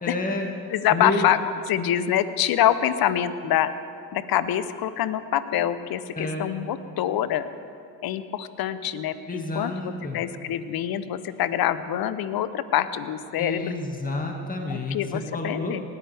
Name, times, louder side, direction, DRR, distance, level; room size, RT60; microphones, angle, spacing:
voice 1, 0.0-0.5 0.9-1.2 6.2-6.5 9.3-10.2 13.4-15.7, left 2 dB, 20° left, 1 dB, 2.0 m, -30 dB
voice 2, 0.7-1.4 1.7-3.7 4.1-7.5 8.0-13.7 14.7-15.8, left 11 dB, 55° left, 14 dB, 0.8 m, -25 dB
19.5 x 13.5 x 3.5 m, 2.7 s
hypercardioid pair, 60°, 45 cm